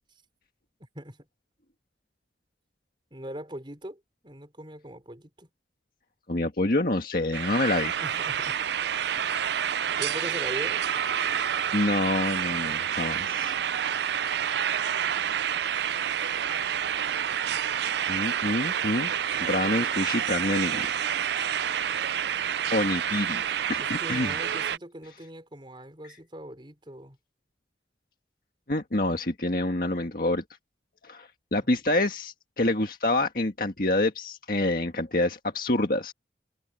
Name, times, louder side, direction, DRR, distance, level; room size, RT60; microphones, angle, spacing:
voice 1, 3.1-5.5 8.0-8.6 10.0-10.9 11.2-11.7 23.8-27.2 31.6-31.7, equal, 25° right, 4.5 m, -41 dB
voice 2, 6.3-8.0 11.3-13.6 18.1-19.1 19.4-21.0 21.4-22.3 22.7-23.4 23.7-24.4 28.7-30.4 31.0-36.1, left 2 dB, 50° left, 1.8 m, -27 dB
sound 1, 7.3-24.8, right 9 dB, 70° right, 0.4 m, -28 dB
head